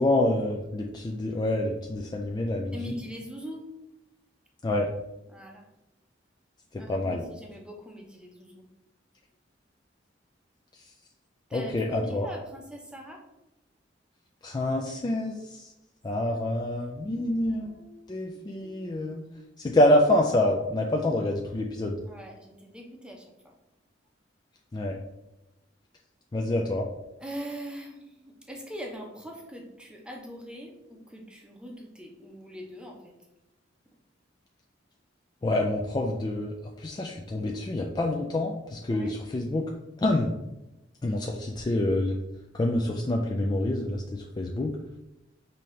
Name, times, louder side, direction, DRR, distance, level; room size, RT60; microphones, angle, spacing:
voice 1, 0.0-3.0 4.6-4.9 6.7-7.3 11.5-12.3 14.4-15.7 16.0-17.7 18.1-19.2 19.6-22.0 24.7-25.0 26.3-26.9 35.4-39.7 40.0-40.3 41.0-42.2 42.5-44.7, left 1 dB, 20° left, 0 dB, 0.3 m, -27 dB
voice 2, 2.7-3.6 5.3-5.7 6.8-8.6 11.5-13.2 16.3-16.4 17.1-18.1 18.6-19.0 19.4-19.5 22.1-23.2 27.2-33.1 38.9-39.1, equal, 5° right, 1 dB, 0.7 m, -42 dB
5.3 x 2.8 x 3.1 m, 0.96 s
head